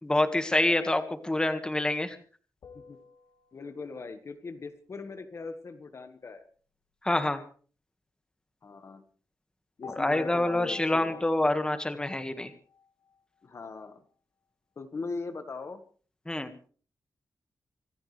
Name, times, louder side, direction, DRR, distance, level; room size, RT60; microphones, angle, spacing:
voice 1, 0.0-2.2 7.0-7.4 10.0-12.5 16.3-16.5, left 1 dB, 10° left, 8 dB, 1.8 m, -26 dB
sound 1, 2.6-4.2 9.8-13.2, left 6 dB, 75° left, 3.2 m, -49 dB
voice 2, 3.5-6.5 8.6-9.0 9.8-11.2 13.4-14.0 14.8-15.8, left 4 dB, 45° left, 8 dB, 1.6 m, -40 dB
26.5 x 14.0 x 3.4 m, 0.42 s
wide cardioid pair, 140°, 7 cm